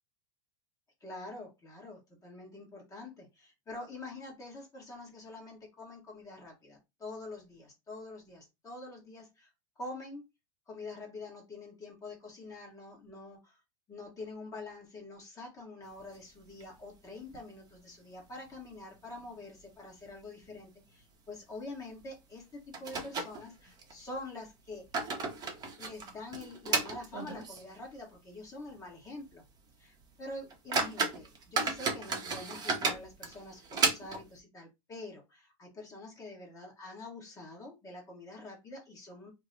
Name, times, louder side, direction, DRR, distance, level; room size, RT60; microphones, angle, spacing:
voice 1, 1.0-9.5 9.8-10.2 10.7-13.6 13.9-24.9 25.8-29.4 29.8-39.3, left 2 dB, 20° left, 1.3 m, -46 dB
sound 1, 16.0-17.0 17.3-17.4 17.7-17.8 18.5-18.9 19.2-19.4 20.0-20.2 20.5-20.7 22.0-22.1 22.7-23.9 24.6-27.8 28.1-28.2 28.8-28.9 29.3-29.5 30.0-30.1 30.5-34.4, right 4 dB, 20° right, 0.8 m, -34 dB
2.9 x 2.1 x 3.8 m
supercardioid pair, 135°, 18 cm